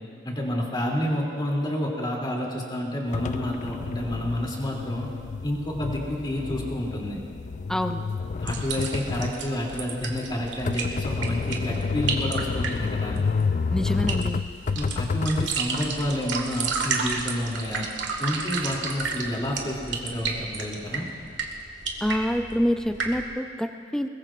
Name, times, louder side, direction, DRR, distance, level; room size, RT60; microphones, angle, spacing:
voice 1, 0.2-5.1 5.4-7.2 8.4-13.2 14.8-17.9 18.2-21.1, left 1 dB, 25° left, -2 dB, 2.9 m, -29 dB
sound 1, 3.1-15.5, left 5 dB, 40° left, 0.3 m, -30 dB
voice 2, 7.7-8.0 13.7-14.4 22.0-24.1, equal, 5° left, 6 dB, 0.6 m, -26 dB
sound 2, 8.5-23.3, right 4 dB, 75° right, 1.8 m, -32 dB
22.0 x 21.0 x 2.5 m, 2.4 s
head